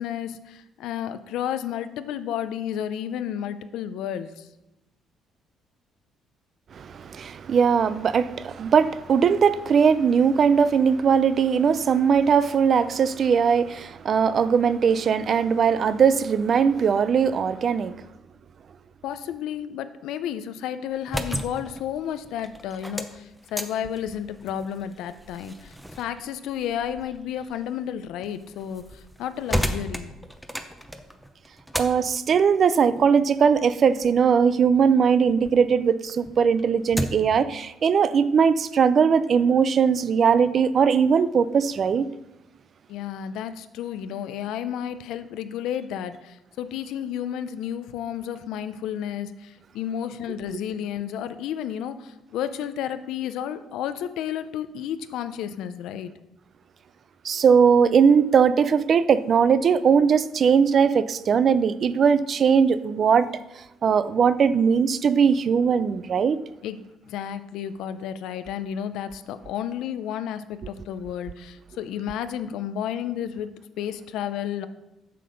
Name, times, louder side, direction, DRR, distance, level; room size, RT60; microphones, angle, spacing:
voice 1, 0.0-4.5 19.0-30.1 42.9-56.1 66.6-66.8 67.1-74.7, left 9 dB, 80° left, 0.5 m, -32 dB
voice 2, 6.7-18.0 31.7-42.1 57.2-63.3 63.8-66.4, right 6 dB, 45° right, 0.4 m, -20 dB
sound 1, 20.9-35.6 36.0-37.4, equal, ahead, 0.7 m, -35 dB
7.7 x 6.8 x 5.1 m
cardioid pair, 120°, 0 cm